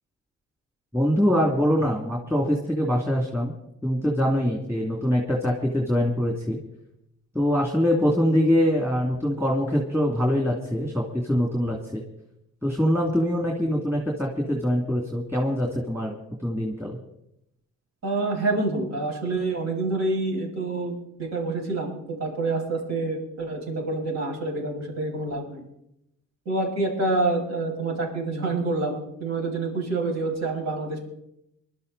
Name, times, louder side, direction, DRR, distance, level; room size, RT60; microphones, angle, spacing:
voice 1, 0.9-3.5 3.8-6.6 7.3-12.0 12.6-17.0, equal, 10° right, -1 dB, 2.7 m, -24 dB
voice 2, 18.0-25.6 26.5-31.0, right 2 dB, 60° right, -1 dB, 6.9 m, -27 dB
22.5 x 12.5 x 4.2 m, 0.82 s
cardioid pair, 90°, 30 cm